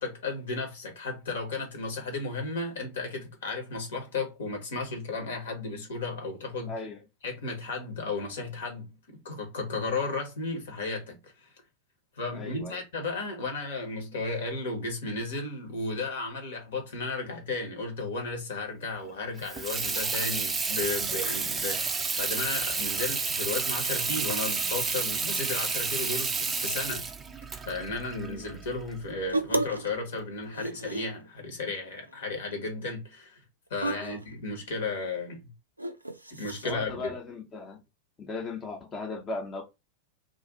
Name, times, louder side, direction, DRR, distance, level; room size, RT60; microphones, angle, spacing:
voice 1, 0.0-6.7 7.2-11.3 12.2-27.1 27.6-33.4 33.7-35.4 36.3-37.1, left 3 dB, 60° left, 1.0 m, -34 dB
voice 2, 6.7-7.0 12.3-12.8 28.3-28.5 33.9-34.2 36.6-37.8 38.2-39.6, left 3 dB, 25° left, 0.7 m, -37 dB
Water tap faucet / Sink (filling or washing), 19.4-29.0, right 4 dB, 15° right, 0.4 m, -30 dB
sound 1, 29.3-29.9 30.2-31.3 31.7-32.1 32.4-32.5 33.8-34.3 35.8-36.7, right 2 dB, 85° right, 0.3 m, -32 dB
2.5 x 2.4 x 3.7 m
figure-of-eight pair, 90°, 0 cm